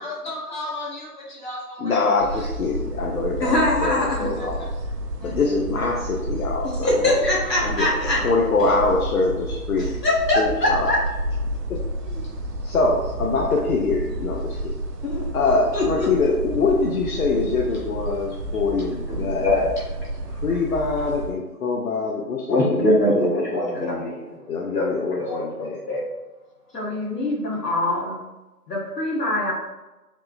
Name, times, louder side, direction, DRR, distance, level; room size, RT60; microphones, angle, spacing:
voice 1, 0.0-1.9 4.4-4.7 5.2-5.3 7.0-7.7 18.8-18.9, left 2 dB, 30° left, -5 dB, 0.7 m, -33 dB
voice 2, 1.8-4.6 5.2-7.0 7.6-7.9 8.2-9.9 10.4-11.0 11.7-11.8 12.6-14.7 15.3-19.5 20.3-24.1 24.5-25.8, left 3 dB, 65° left, -1 dB, 0.6 m, -24 dB
sound 1, 2.2-21.4, right 1 dB, 90° right, 0.7 m, -31 dB
voice 3, 3.4-4.3 6.8-8.2 10.0-11.0 12.1-12.2 15.0-15.3 15.7-16.1 19.1-19.7 22.5-24.4 24.7-26.0 26.7-28.2 28.7-29.5, left 1 dB, 90° left, -4 dB, 1.4 m, -23 dB
3.6 x 2.8 x 2.4 m, 1.1 s
figure-of-eight pair, 155°, 47 cm